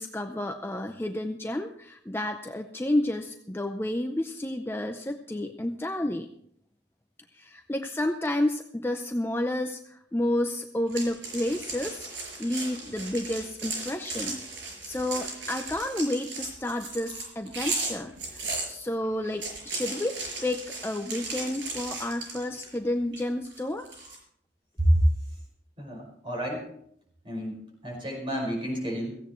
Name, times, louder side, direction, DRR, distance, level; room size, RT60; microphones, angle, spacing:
voice 1, 0.0-6.3 7.3-12.1 12.4-14.4 14.8-23.9, left 1 dB, 15° left, 5 dB, 0.6 m, -30 dB
sound 1, 10.9-18.7 19.2-22.8 23.1-24.2, right 3 dB, 85° right, 5.9 m, -36 dB
voice 2, 25.8-26.7 27.2-29.2, equal, 30° right, -1 dB, 5.1 m, -29 dB
16.5 x 15.5 x 3.1 m, 0.69 s
head